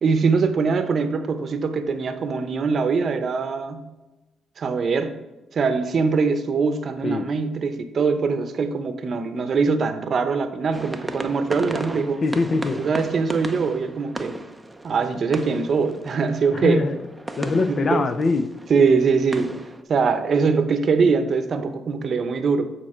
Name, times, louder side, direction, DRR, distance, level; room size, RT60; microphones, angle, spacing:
voice 1, 0.0-3.9 4.6-5.2 5.5-12.2 12.8-14.4 14.8-16.9 17.7-18.1 18.7-19.5 19.9-22.7, right 5 dB, 50° right, 8 dB, 0.8 m, -22 dB
sound 1, 10.7-19.8, right 1 dB, 10° right, 0.7 m, -35 dB
voice 2, 12.2-12.8 16.5-17.0 17.4-18.5, left 3 dB, 45° left, 9 dB, 0.7 m, -22 dB
8.6 x 4.5 x 4.4 m, 1.1 s
cardioid pair, 90°, 0 cm